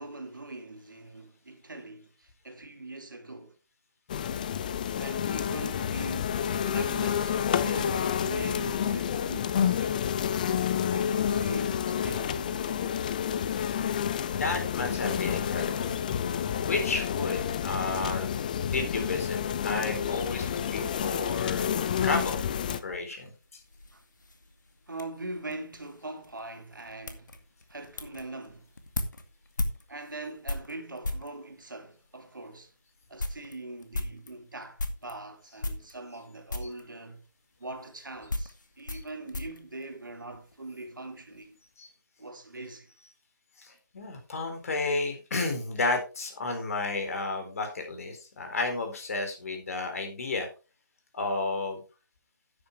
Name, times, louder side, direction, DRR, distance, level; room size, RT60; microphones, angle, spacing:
voice 1, 0.0-3.6 4.9-10.0 10.8-12.7 23.9-24.0 24.9-27.3 27.7-28.7 29.9-32.7 33.1-37.2 37.6-41.6 42.2-42.9, right 2 dB, 70° right, 2.9 m, -42 dB
sound 1, 4.1-22.8, left 8 dB, 25° left, 0.6 m, -29 dB
voice 2, 14.3-18.3 18.6-22.4 22.8-23.6 38.9-39.0 41.8-41.9 43.6-50.5 51.1-51.8, left 3 dB, 45° left, 4.2 m, -32 dB
sound 2, 22.7-31.4 32.1-32.2 32.6-32.7 33.0-35.2 35.6-36.2 36.5-36.9 37.7-40.6 40.9-41.4, left 2 dB, 60° left, 2.1 m, -37 dB
11.0 x 9.6 x 3.4 m
figure-of-eight pair, 150°, 11 cm